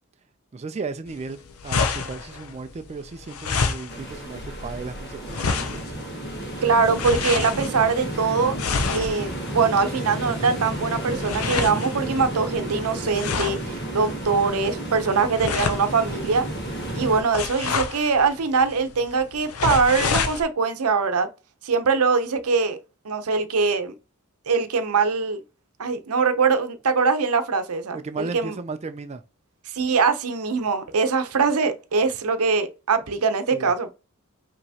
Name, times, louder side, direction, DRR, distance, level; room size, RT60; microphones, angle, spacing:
voice 1, 0.5-5.9 27.9-29.2 33.5-33.7, right 4 dB, 30° right, 0.3 m, -35 dB
sound 1, 1.1-20.4, left 5 dB, 75° left, 0.6 m, -30 dB
sound 2, 3.9-17.2, right 1 dB, 50° left, 1.4 m, -32 dB
voice 2, 6.6-8.6 8.9-16.5 16.9-21.3 21.6-22.8 23.0-23.9 24.5-25.4 25.8-28.5 29.7-33.9, right 5 dB, 85° right, 0.7 m, -22 dB
5.5 x 2.9 x 2.8 m
head